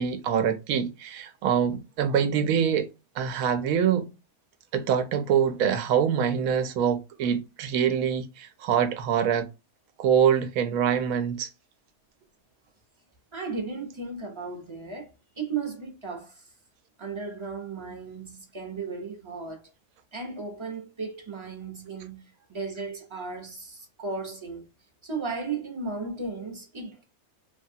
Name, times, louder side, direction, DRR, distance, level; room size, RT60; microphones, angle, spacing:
voice 1, 0.0-2.8 3.2-4.1 4.7-9.5 10.0-11.5, right 8 dB, 75° right, 1.0 m, -24 dB
voice 2, 13.3-15.1 15.4-16.5 17.0-19.7 20.1-24.6 25.0-27.0, right 4 dB, 30° right, 0.6 m, -35 dB
3.3 x 2.3 x 2.6 m
omnidirectional pair, 1.5 m